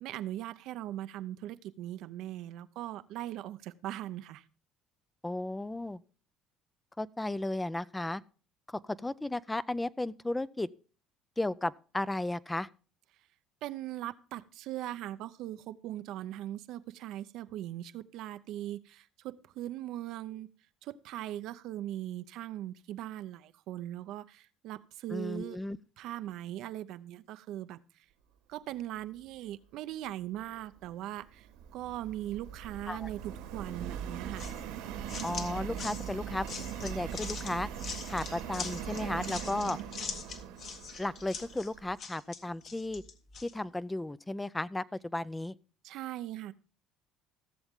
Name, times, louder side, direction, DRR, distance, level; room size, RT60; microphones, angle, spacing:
voice 1, 0.0-4.4 13.6-20.5 20.8-25.6 26.0-27.8 28.5-34.5 45.8-46.5, right 13 dB, 70° right, 0.6 m, -40 dB
voice 2, 5.2-6.0 7.0-8.2 8.7-10.7 11.4-12.7 25.1-25.8 32.9-33.1 35.2-37.7 38.1-39.8 41.0-43.0 43.4-45.5, left 2 dB, 10° left, 0.4 m, -34 dB
Subway metro underground, 30.6-41.9, right 9 dB, 85° right, 1.8 m, -41 dB
Cricket, 34.3-39.3, left 5 dB, 90° left, 5.6 m, -64 dB
sound 1, 34.4-43.5, left 6 dB, 55° left, 1.6 m, -43 dB
16.0 x 7.1 x 3.6 m
supercardioid pair, 90°, 0 cm